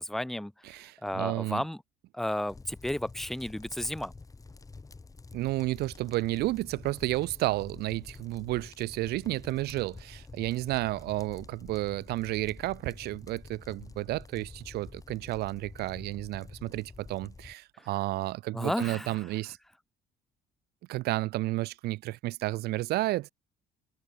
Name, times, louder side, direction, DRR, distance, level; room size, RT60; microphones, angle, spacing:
voice 1, 0.0-0.5 1.0-1.8 2.1-4.1 18.5-19.2, left 1 dB, ahead, 0.6 m, -32 dB
voice 2, 0.6-1.6 5.3-19.6 20.9-23.3, right 18 dB, 70° right, 0.4 m, -32 dB
sound 1, 2.5-17.5, left 3 dB, 20° left, 6.9 m, -48 dB
cardioid pair, 110°, 17 cm